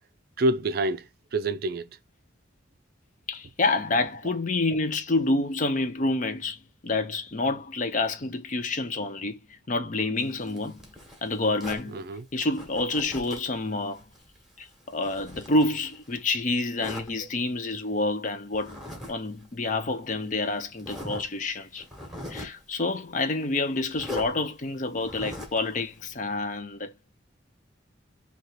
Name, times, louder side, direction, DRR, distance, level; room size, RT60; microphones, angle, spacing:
voice 1, 0.4-2.0 11.9-12.3 17.2-17.3, right 2 dB, 50° right, 0.4 m, -27 dB
voice 2, 3.3-10.9 11.2-12.0 12.3-14.0 14.6-18.8 19.1-21.8 22.3-26.9, left 2 dB, 40° left, 0.5 m, -28 dB
Zipper (clothing), 10.2-11.9 12.5-13.6 13.9-16.2 16.8-17.1 18.5-19.1 19.4-19.5 20.2-20.3 20.8-21.3 21.8-22.6 23.9-24.3 25.0-25.6, left 1 dB, ahead, 1.1 m, -40 dB
3.0 x 2.9 x 4.4 m
head